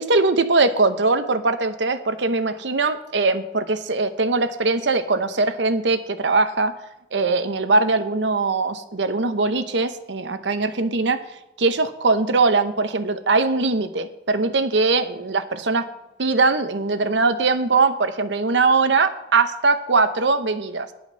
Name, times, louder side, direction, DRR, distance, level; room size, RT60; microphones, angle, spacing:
voice 1, 0.0-6.7 7.1-11.2 11.6-15.9 16.2-20.9, right 3 dB, 80° right, 10 dB, 0.9 m, -21 dB
10.5 x 8.8 x 5.6 m, 0.86 s
head